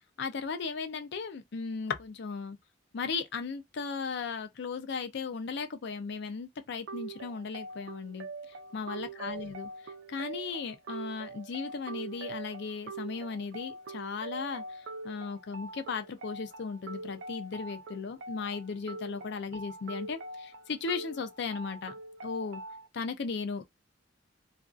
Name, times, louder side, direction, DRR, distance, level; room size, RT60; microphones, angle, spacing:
voice 1, 0.0-2.6 2.9-8.3 8.7-22.0 22.2-22.6 22.9-23.6, left 5 dB, 60° left, 0.4 m, -36 dB
sound 1, 6.9-22.9, right 3 dB, 80° right, 0.4 m, -43 dB
2.5 x 2.4 x 2.3 m
head